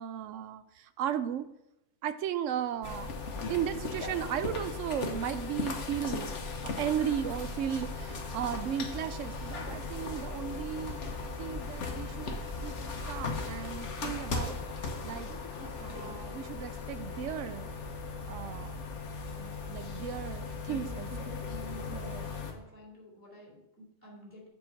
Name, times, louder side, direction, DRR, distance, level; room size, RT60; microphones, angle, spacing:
voice 1, 0.0-1.5 2.0-3.1 3.5-6.4 6.6-11.0 11.4-12.8 13.1-14.6 15.0-15.3 15.8-17.7 18.3-18.8 19.4-21.3 21.9-22.3, right 9 dB, 75° right, 12 dB, 0.9 m, -35 dB
sound 1, 2.8-22.5, left 3 dB, 65° left, 1.3 m, -37 dB
voice 2, 21.9-24.5, left 1 dB, 10° right, -3 dB, 3.2 m, -53 dB
7.3 x 4.5 x 5.8 m, 0.85 s
omnidirectional pair, 1.3 m